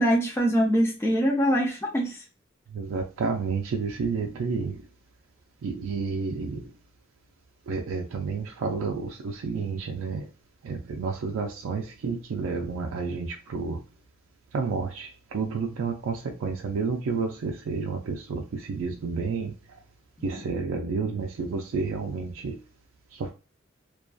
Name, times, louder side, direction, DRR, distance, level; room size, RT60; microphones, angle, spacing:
voice 1, 0.0-2.2, equal, 15° left, 0.4 m, -23 dB
voice 2, 2.8-4.7 5.6-6.6 7.7-10.2 10.7-13.8 14.5-15.1 15.3-18.4 18.7-19.5 20.2-22.6, right 4 dB, 90° right, 0.3 m, -30 dB
2.5 x 2.3 x 2.3 m
head